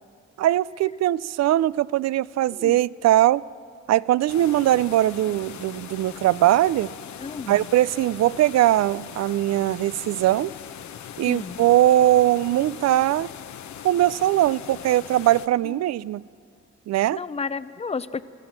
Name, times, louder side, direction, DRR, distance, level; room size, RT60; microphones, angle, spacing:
voice 1, 0.4-3.4 3.9-6.9 7.5-10.5 11.2-13.3 13.8-16.2 16.9-17.2, right 14 dB, 60° right, 21 dB, 0.5 m, -21 dB
sound 1, 4.3-15.5, left 9 dB, 65° left, 1.0 m, -40 dB
voice 2, 7.2-7.6 11.3-11.6 15.6-15.8 17.1-18.2, left 5 dB, 20° left, 15 dB, 0.6 m, -32 dB
25.5 x 14.0 x 7.4 m, 2.3 s
cardioid pair, 90°, 30 cm